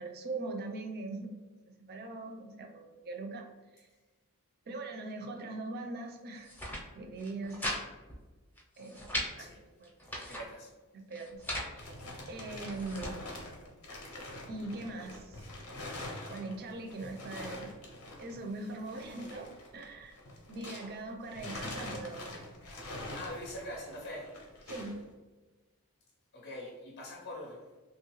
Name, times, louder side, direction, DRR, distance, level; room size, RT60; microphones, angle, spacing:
voice 1, 0.0-1.3 1.9-3.5 3.7-3.9 4.7-6.5 6.9-7.9 8.8-9.9 10.9-11.4 11.7-12.0 12.3-13.3 14.5-15.5 16.3-17.7 18.2-20.2 20.5-22.5 22.8-22.9 24.7-25.0, right 2 dB, 45° right, 4 dB, 0.4 m, -41 dB
sound 1, 6.3-6.8 7.2-7.8 8.1-8.2 8.6-9.3 9.8-10.5 11.1-11.7 12.4-13.1, equal, 10° left, 0.5 m, -38 dB
voice 2, 10.1-10.7 23.1-24.3 26.3-27.8, left 1 dB, 50° left, -2 dB, 0.6 m, -43 dB
sound 2, 11.4-21.0 21.3-25.0, left 1 dB, 90° left, 0.8 m, -45 dB
3.0 x 2.3 x 3.0 m, 1.3 s
head